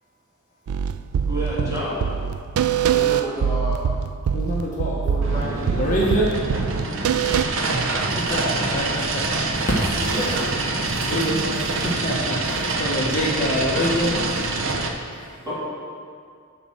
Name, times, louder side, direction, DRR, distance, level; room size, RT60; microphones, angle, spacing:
sound 1, 0.7-7.4, right 7 dB, 80° right, 0.4 m, -24 dB
voice 1, 1.3-2.0 9.9-10.6 15.5-15.6, equal, 15° right, -8 dB, 2.9 m, -29 dB
voice 2, 2.8-3.9 5.0-5.5 15.4-15.5, equal, 20° left, -7 dB, 2.0 m, -31 dB
voice 3, 4.3-5.0 5.5-6.3 8.2-10.1 10.9-14.1 15.1-15.3, equal, 35° left, -5 dB, 1.2 m, -25 dB
sound 2, 5.2-14.9, right 3 dB, 60° right, 0.9 m, -25 dB
12.0 x 4.4 x 7.2 m, 2.2 s
head